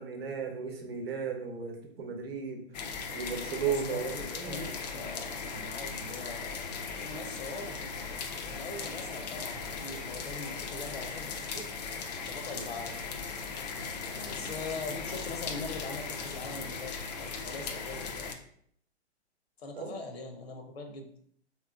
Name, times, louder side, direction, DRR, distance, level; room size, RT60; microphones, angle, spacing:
voice 1, 0.0-2.6 3.1-4.7 19.7-19.9, right 6 dB, 60° right, 3 dB, 0.8 m, -35 dB
sound 1, 2.7-18.3, left 5 dB, 40° left, 0.4 m, -38 dB
voice 2, 3.6-6.6 7.0-7.8 8.4-11.7 12.1-13.0 14.0-16.9 17.2-18.4 19.6-21.1, left 3 dB, 65° left, 5 dB, 0.7 m, -42 dB
3.3 x 3.0 x 2.3 m, 0.64 s
figure-of-eight pair, 115°, 34 cm